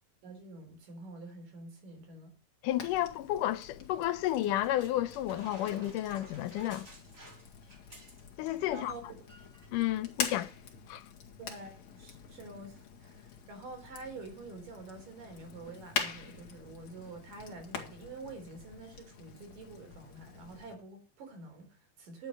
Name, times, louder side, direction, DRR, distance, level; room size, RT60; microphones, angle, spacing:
voice 1, 0.2-2.3 8.7-9.0 11.4-22.3, right 3 dB, 80° right, 5.3 m, -47 dB
voice 2, 2.6-6.9 8.4-8.9 9.7-10.5 10.9-11.0, left 13 dB, 80° left, 2.3 m, -31 dB
Fire, 2.7-20.8, left 6 dB, 60° left, 3.2 m, -44 dB
sound 1, 4.3-8.6 8.8-9.0 9.3-9.7 10.4-10.5, right 1 dB, 25° right, 3.8 m, -53 dB
11.5 x 7.6 x 6.6 m
omnidirectional pair, 3.8 m